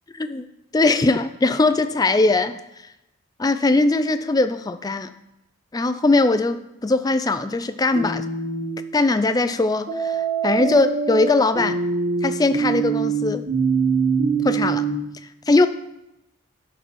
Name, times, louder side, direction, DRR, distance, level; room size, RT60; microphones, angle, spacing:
voice 1, 0.1-0.5 0.7-2.6 3.4-5.1 5.7-8.2 8.9-11.8 12.2-13.5 14.4-14.9 15.5-15.7, left 2 dB, 20° left, 11 dB, 0.3 m, -20 dB
sound 1, 7.9-8.8 9.9-14.9, right 5 dB, 70° right, 3.0 m, -23 dB
11.0 x 4.0 x 6.3 m, 0.91 s
head